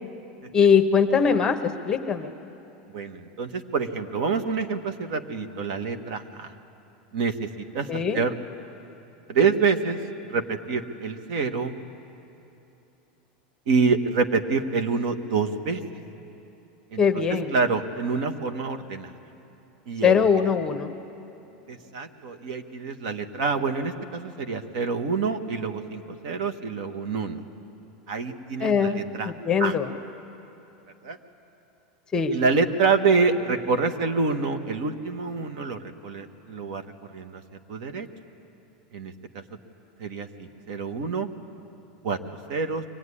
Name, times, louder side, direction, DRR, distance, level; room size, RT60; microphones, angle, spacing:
voice 1, 0.5-1.6 1.8-2.3 7.9-8.2 17.0-17.5 20.0-20.9 28.6-29.0 29.2-29.9 32.1-32.3, left 6 dB, 15° left, 7 dB, 1.0 m, -21 dB
voice 2, 2.9-6.5 7.1-8.3 9.3-10.0 10.3-11.7 13.7-15.8 16.9-17.0 17.5-19.1 19.9-20.5 21.7-27.4 28.1-29.3 29.6-29.7 31.0-31.2 32.3-36.8 37.1-37.4 37.7-38.1 38.9-39.1 40.0-41.3 42.0-42.2 42.5-42.8, right 4 dB, 60° right, 7 dB, 1.4 m, -26 dB
23.5 x 17.5 x 9.9 m, 3.0 s
supercardioid pair, 155°, 4 cm